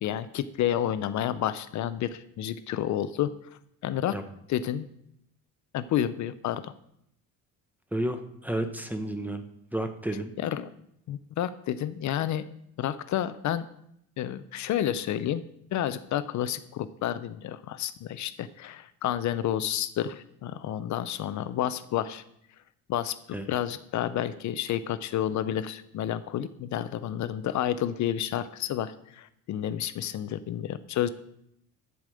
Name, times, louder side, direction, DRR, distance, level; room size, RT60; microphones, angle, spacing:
voice 1, 0.0-3.3 3.8-4.1 4.5-4.9 5.7-6.7 10.4-10.7 11.1-12.4 12.8-13.7 14.2-15.4 15.7-22.2 22.9-23.1 23.5-31.1, left 11 dB, 55° left, 13 dB, 0.6 m, -30 dB
voice 2, 7.9-9.4 9.7-10.3 23.3-23.5, right 1 dB, 5° right, 7 dB, 0.7 m, -31 dB
11.0 x 5.0 x 7.6 m, 0.75 s
cardioid pair, 155°, 35 cm